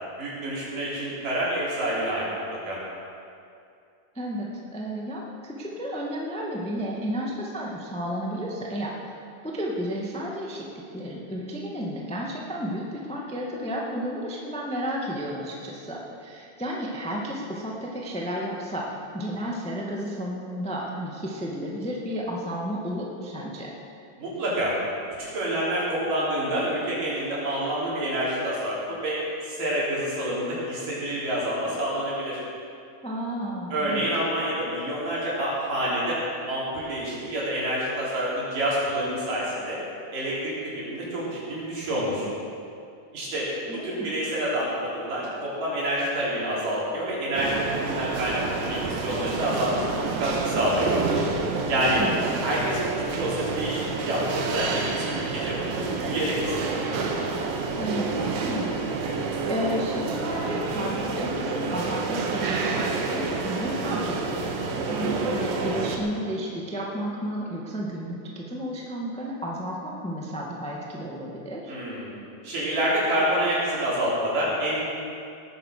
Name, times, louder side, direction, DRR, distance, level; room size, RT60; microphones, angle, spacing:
voice 1, 0.2-2.8 24.2-24.7 25.2-32.4 33.7-36.2 36.5-39.8 40.1-40.6 40.9-42.3 43.1-50.9 51.7-52.0 52.4-53.8 54.1-56.5 56.8-57.0 71.7-72.1 72.4-74.9, right 1 dB, 65° right, -7 dB, 5.6 m, -28 dB
voice 2, 4.1-4.5 4.7-9.0 9.4-10.7 10.9-18.9 19.1-23.7 33.0-34.0 43.7-44.1 52.0-52.4 57.8-58.7 59.5-71.7, equal, 5° left, -2 dB, 0.4 m, -32 dB
sound 1, 47.3-66.0, right 4 dB, 85° right, 3.2 m, -28 dB
18.5 x 9.6 x 6.7 m, 2.5 s
omnidirectional pair, 4.1 m